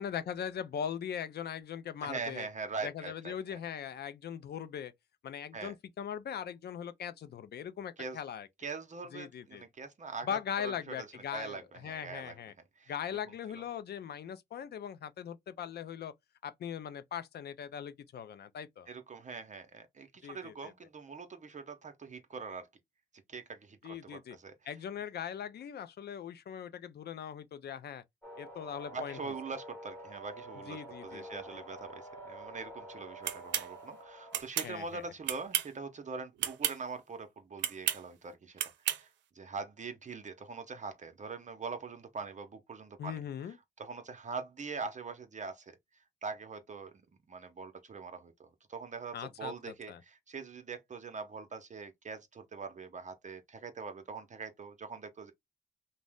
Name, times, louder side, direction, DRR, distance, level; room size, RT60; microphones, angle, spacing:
voice 1, 0.0-2.5 2.8-4.9 5.2-8.5 9.1-9.6 10.2-12.5 12.9-16.1 16.4-18.9 20.2-20.7 23.8-24.4 24.7-28.0 28.4-29.3 30.7-31.4 34.6-35.0 43.0-43.6 49.1-50.0, left 8 dB, 60° left, 0.5 m, -40 dB
voice 2, 2.0-3.6 5.5-5.7 8.0-8.2 8.6-12.4 12.8-12.9 13.5-13.6 18.9-22.7 23.3-24.5 28.9-39.1 39.3-43.2 43.8-45.7 46.2-46.9 47.3-55.3, right 4 dB, 40° right, 0.6 m, -43 dB
sound 1, 28.2-34.4, right 1 dB, 15° left, 1.0 m, -48 dB
sound 2, 33.2-33.7 34.3-34.7 35.2-35.8 36.4-36.8 37.6-38.0 38.6-39.0, right 11 dB, 85° right, 0.5 m, -32 dB
2.6 x 2.0 x 3.3 m
cardioid pair, 65°, 19 cm